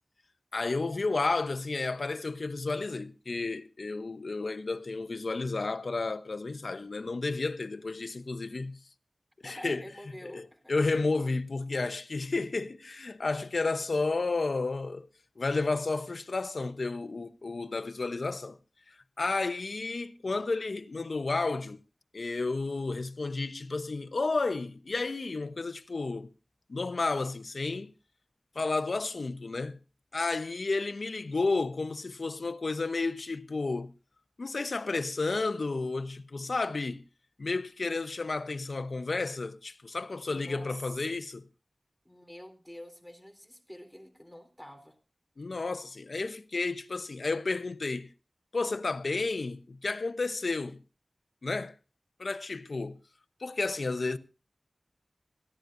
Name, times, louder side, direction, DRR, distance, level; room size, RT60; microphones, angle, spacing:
voice 1, 0.5-8.8 9.4-9.8 10.3-15.1 15.4-18.6 18.9-21.8 22.1-26.3 26.7-27.9 28.5-29.8 30.1-33.9 34.4-37.0 37.4-41.5 45.4-48.1 48.5-50.8 51.4-51.7 52.2-53.0 53.4-54.2, left 3 dB, 75° left, 0.9 m, -32 dB
voice 2, 9.4-10.8 40.2-41.0 42.0-45.0, equal, ahead, 3.8 m, -47 dB
22.5 x 15.5 x 2.6 m
wide cardioid pair, 55°, 0 cm